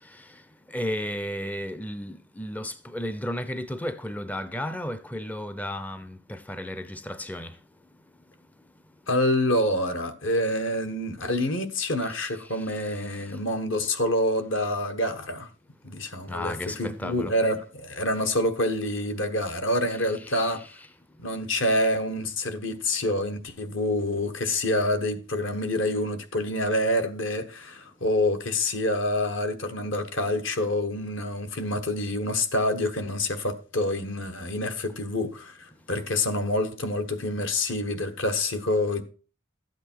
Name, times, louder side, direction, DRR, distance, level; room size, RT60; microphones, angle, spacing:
voice 1, 0.0-7.6 12.0-13.4 16.3-17.3 20.2-20.8, left 1 dB, 10° left, 0.4 m, -34 dB
voice 2, 9.1-15.5 15.8-16.5 16.8-20.6 21.2-35.6 35.9-39.0, left 1 dB, 70° left, 1.3 m, -27 dB
12.0 x 8.1 x 4.5 m
head